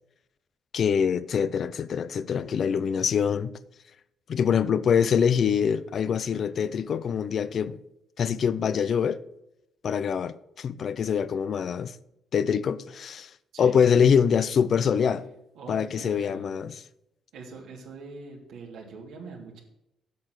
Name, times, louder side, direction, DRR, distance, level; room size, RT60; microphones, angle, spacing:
voice 1, 0.7-3.5 4.3-7.8 8.2-9.2 9.8-12.0 12.3-13.3 13.6-15.3 15.7-16.7, left 7 dB, 55° left, 0.6 m, -24 dB
voice 2, 15.5-16.6 17.3-19.6, right 4 dB, 85° right, 2.9 m, -43 dB
8.3 x 6.7 x 6.3 m
cardioid pair, 90°, 0 cm